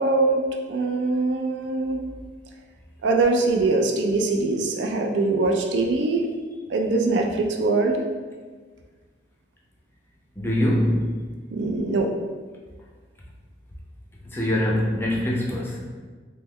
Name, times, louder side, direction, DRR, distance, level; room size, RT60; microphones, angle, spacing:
voice 1, 0.0-2.0 3.0-6.2 6.7-8.0 11.5-12.1, right 3 dB, 75° right, 2 dB, 0.4 m, -22 dB
voice 2, 10.4-11.2 14.3-15.8, left 1 dB, 10° left, -3 dB, 0.4 m, -23 dB
3.0 x 2.2 x 3.5 m, 1.4 s
head